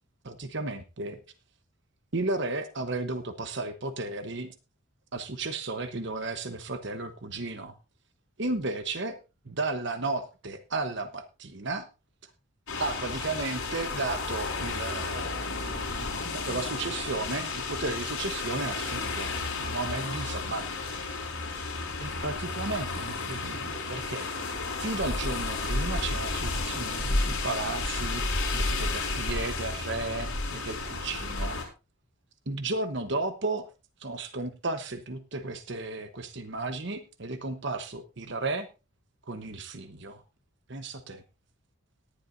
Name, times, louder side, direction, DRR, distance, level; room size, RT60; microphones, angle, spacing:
voice 1, 0.2-1.2 2.1-4.5 5.1-7.7 8.4-9.2 9.4-11.9 12.8-19.3 19.6-20.7 22.0-24.3 24.8-31.6 32.5-33.7 34.0-38.7 39.3-40.2 40.7-41.2, right 3 dB, 55° right, 9 dB, 1.0 m, -34 dB
sound 1, 12.7-31.6, left 3 dB, 65° left, 5.2 m, -32 dB
18.5 x 11.0 x 2.7 m, 0.29 s
head